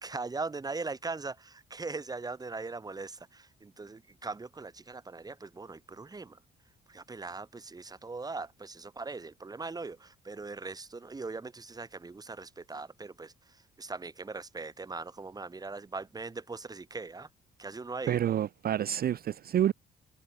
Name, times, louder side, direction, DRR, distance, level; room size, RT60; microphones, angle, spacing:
voice 1, 0.0-6.4 6.9-13.3 13.8-17.3 17.6-18.2, right 3 dB, 20° right, 1.1 m, -40 dB
voice 2, 18.1-19.7, right 10 dB, 50° right, 0.5 m, -28 dB
cardioid pair, 90°, 20 cm